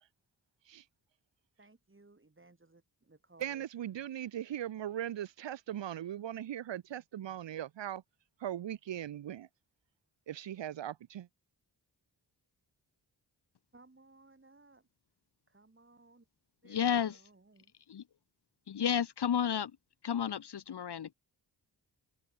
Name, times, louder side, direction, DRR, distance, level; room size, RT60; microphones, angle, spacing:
voice 1, 1.6-3.6 13.7-14.8 15.5-16.3 16.6-17.7, right 2 dB, 30° right, 4.9 m, -61 dB
voice 2, 3.4-8.0 8.4-9.5 10.3-11.3, right 11 dB, 85° right, 0.9 m, -39 dB
voice 3, 16.6-17.2 17.9-18.0 18.7-19.7 20.0-21.1, left 8 dB, 70° left, 1.1 m, -32 dB
open air
cardioid pair, 65°, 42 cm